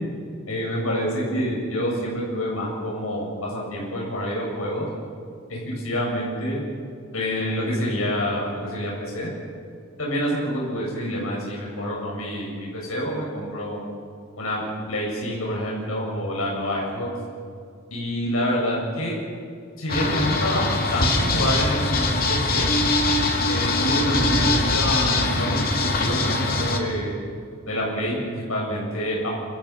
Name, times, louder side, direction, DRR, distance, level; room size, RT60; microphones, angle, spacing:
voice 1, 0.5-4.9 5.5-6.6 7.1-9.3 10.0-13.8 14.4-14.6 14.9-17.1 17.9-19.2 19.8-22.7 23.5-27.1 27.7-29.3, equal, 80° left, -3 dB, 7.4 m, -27 dB
sound 1, 19.9-26.8, left 2 dB, 45° left, 2.6 m, -22 dB
27.5 x 25.5 x 6.0 m, 2.2 s
head